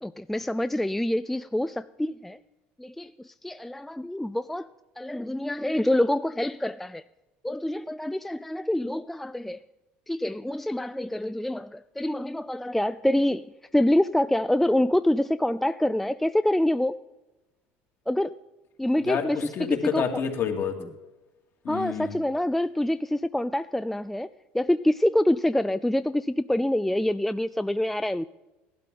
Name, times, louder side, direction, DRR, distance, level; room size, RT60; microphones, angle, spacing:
voice 1, 0.0-2.4 2.8-4.7 5.0-7.0 7.4-9.6 10.1-13.5 13.7-17.0 18.1-18.3 18.8-19.4 19.9-20.0 21.7-24.3 24.5-28.3, left 1 dB, 5° left, 13 dB, 0.3 m, -26 dB
voice 2, 19.0-20.8 21.6-22.2, left 7 dB, 50° left, 3 dB, 2.4 m, -28 dB
17.0 x 12.0 x 3.9 m, 1.0 s
hypercardioid pair, 80°, 6 cm